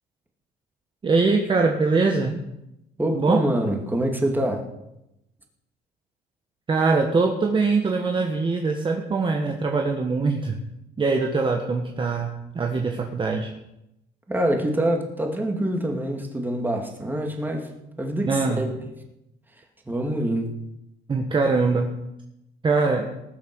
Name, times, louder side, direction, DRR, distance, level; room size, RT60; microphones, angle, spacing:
voice 1, 1.0-2.4 3.1-3.4 6.7-10.6 11.0-13.5 18.3-18.7 21.1-21.9 22.6-23.1, right 4 dB, 30° right, 2 dB, 1.4 m, -22 dB
voice 2, 3.0-4.7 14.3-17.7 18.0-18.9 19.9-20.5, right 1 dB, 10° right, 2 dB, 2.5 m, -25 dB
19.5 x 7.2 x 6.3 m, 0.88 s
cardioid pair, 110°, 17 cm